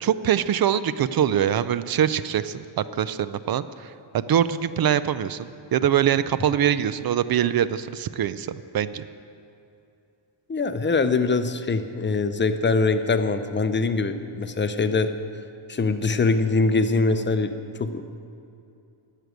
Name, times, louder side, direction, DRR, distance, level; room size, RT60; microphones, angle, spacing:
voice 1, 0.0-3.7 4.1-9.0, right 9 dB, 50° right, 15 dB, 0.4 m, -23 dB
voice 2, 10.5-15.1 15.7-17.5 17.8-18.0, left 3 dB, 25° left, 10 dB, 0.5 m, -23 dB
11.0 x 6.7 x 9.2 m, 2.6 s
wide cardioid pair, 130°, 49 cm